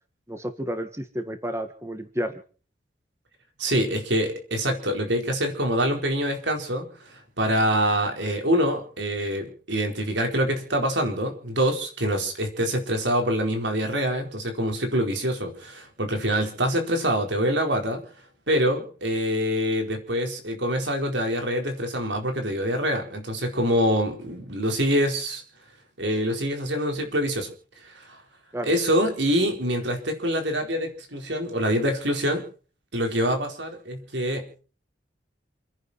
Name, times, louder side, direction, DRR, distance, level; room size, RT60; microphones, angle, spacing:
voice 1, 0.3-2.3 28.5-28.7, equal, 15° right, 7 dB, 1.7 m, -31 dB
voice 2, 3.6-18.0 18.5-25.4 26.0-27.5 27.8-28.2 28.6-32.4 32.9-34.6, equal, 75° right, 4 dB, 4.4 m, -25 dB
28.5 x 10.5 x 4.3 m, 0.40 s
head